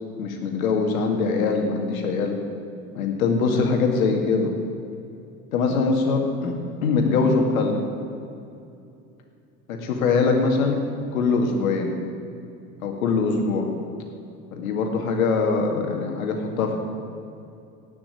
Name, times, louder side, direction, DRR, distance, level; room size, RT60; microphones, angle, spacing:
voice 1, 0.2-2.3 2.9-4.5 5.5-6.5 6.8-7.8 9.7-10.8 11.1-11.9 12.8-13.7 14.5-16.8, left 4 dB, 65° left, 3 dB, 2.2 m, -22 dB
18.0 x 6.1 x 9.1 m, 2.6 s
figure-of-eight pair, 70°, 45 cm